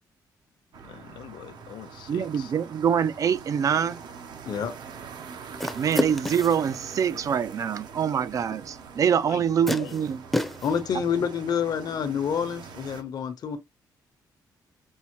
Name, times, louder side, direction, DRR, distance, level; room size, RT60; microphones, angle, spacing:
sound 1, 0.7-13.0, right 6 dB, 70° right, 0.8 m, -43 dB
voice 1, 0.8-2.5 9.3-9.4 9.8-10.0, left 11 dB, 85° left, 0.4 m, -43 dB
voice 2, 2.1-4.0 5.8-10.2, right 8 dB, 50° right, 0.3 m, -25 dB
sound 2, 5.6-6.7 8.5-8.6 9.7-10.8, equal, ahead, 0.6 m, -29 dB
voice 3, 10.6-13.6, left 7 dB, 60° left, 0.8 m, -28 dB
5.4 x 2.0 x 2.9 m
cardioid pair, 100°, 8 cm